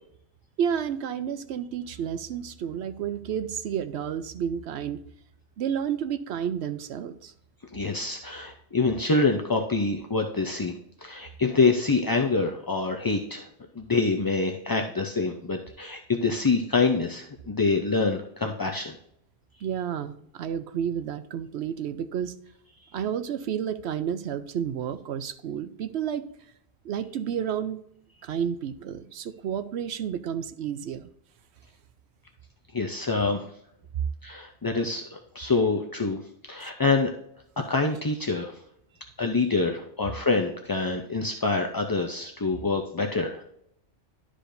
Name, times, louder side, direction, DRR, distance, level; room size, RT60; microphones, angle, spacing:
voice 1, 0.6-5.0 5.6-7.3 19.6-22.3 22.9-26.3 26.8-27.8 28.2-31.1 36.6-36.7, right 8 dB, 75° right, 11 dB, 0.9 m, -31 dB
voice 2, 7.7-10.7 11.0-13.5 13.8-19.0 32.7-33.5 34.2-36.2 36.5-37.1 37.7-38.5 39.2-43.4, left 3 dB, 30° left, 3 dB, 0.4 m, -26 dB
11.5 x 5.0 x 2.6 m, 0.72 s
omnidirectional pair, 1.2 m